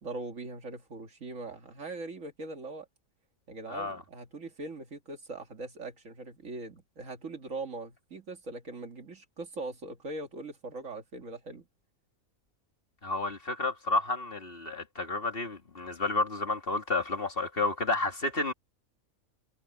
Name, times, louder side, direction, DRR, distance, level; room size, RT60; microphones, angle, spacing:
voice 1, 0.0-2.9 3.5-11.7, right 2 dB, 60° right, 2.2 m, -41 dB
voice 2, 3.7-4.0 13.0-18.5, left 2 dB, 40° left, 2.3 m, -31 dB
omnidirectional pair, 1.6 m